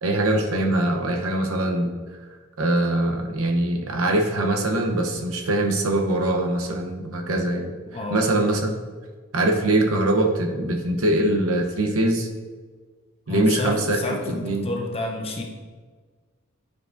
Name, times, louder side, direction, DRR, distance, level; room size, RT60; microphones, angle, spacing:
voice 1, 0.0-1.9 2.6-7.8 8.1-8.7 9.3-12.3 13.3-14.7, right 1 dB, 75° right, 2 dB, 0.8 m, -22 dB
voice 2, 7.9-8.2 13.3-15.4, left 2 dB, 30° left, 1 dB, 0.7 m, -30 dB
9.5 x 4.7 x 2.6 m, 1.5 s
head